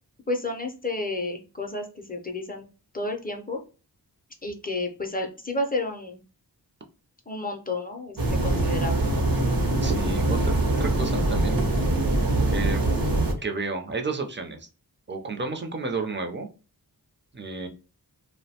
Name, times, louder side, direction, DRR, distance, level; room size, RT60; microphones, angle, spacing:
voice 1, 0.3-2.7 2.9-3.6 4.4-6.2 7.3-9.0 9.8-10.0, left 2 dB, 25° left, 2 dB, 0.5 m, -31 dB
sound 1, 8.2-13.3, right 2 dB, 60° right, 0.7 m, -23 dB
voice 2, 9.8-11.6 12.5-12.8 13.4-14.7 15.1-16.5 17.3-17.7, right 3 dB, 30° right, 4 dB, 0.5 m, -31 dB
2.6 x 2.1 x 2.7 m, 0.34 s
wide cardioid pair, 80°, 39 cm